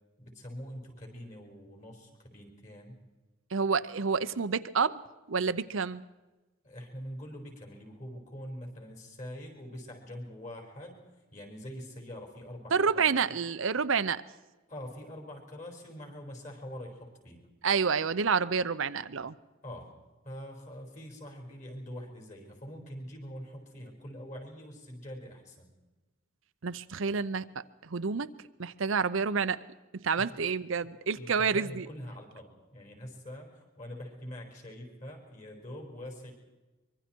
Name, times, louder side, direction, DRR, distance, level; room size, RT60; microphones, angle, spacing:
voice 1, 0.2-3.0 6.6-11.0 11.3-13.1 14.7-17.5 19.6-19.9 20.2-25.7 30.1-30.3 31.1-36.3, equal, 35° left, 3 dB, 5.0 m, -44 dB
voice 2, 3.5-5.0 5.3-6.0 12.7-14.2 17.6-19.3 26.6-27.5 27.8-28.3 28.6-29.6 30.0-31.9, right 5 dB, 70° right, 12 dB, 0.7 m, -28 dB
24.5 x 23.0 x 4.5 m, 1.1 s
head